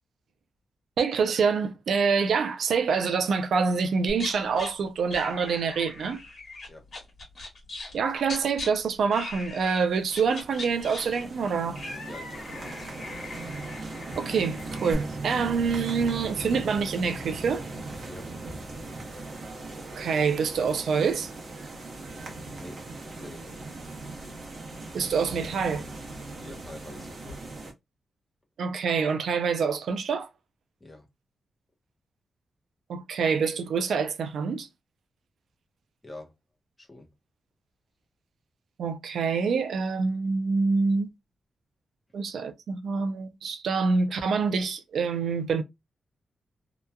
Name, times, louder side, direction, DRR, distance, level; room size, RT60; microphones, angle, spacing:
voice 1, 1.0-6.2 7.9-11.8 14.2-17.6 20.0-21.3 24.9-25.8 28.6-30.3 32.9-34.7 38.8-41.1 42.1-45.6, right 5 dB, 75° right, 0.4 m, -26 dB
sound 1, 4.1-4.7 5.1-8.0 8.2-8.7 9.1-9.8 10.1-14.9, left 2 dB, 45° left, 1.3 m, -40 dB
sound 2, 9.8-27.7, right 2 dB, 45° right, 0.9 m, -39 dB
voice 2, 12.1-12.9 18.1-18.3 22.6-22.8 23.2-23.6 26.4-27.4 30.8-31.1 36.0-36.3 36.8-37.1, left 2 dB, 15° left, 0.8 m, -45 dB
2.9 x 2.3 x 2.2 m
wide cardioid pair, 165°, 0 cm